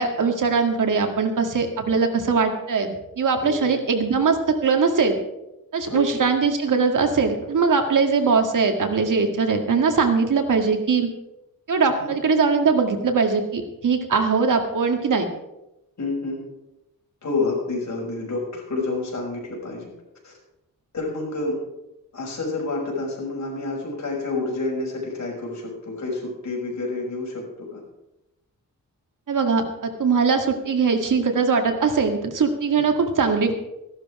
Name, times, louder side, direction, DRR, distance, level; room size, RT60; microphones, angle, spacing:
voice 1, 0.0-5.2 5.7-11.1 11.7-15.3 29.3-33.5, right 5 dB, 60° right, 4 dB, 2.0 m, -21 dB
voice 2, 5.9-6.2 11.9-12.1 16.0-16.4 17.2-19.9 20.2-20.3 20.9-21.6 22.1-27.8 32.7-32.8, left 3 dB, 50° left, -2 dB, 6.0 m, -29 dB
14.5 x 12.0 x 4.9 m, 0.92 s
wide cardioid pair, 105°, 35 cm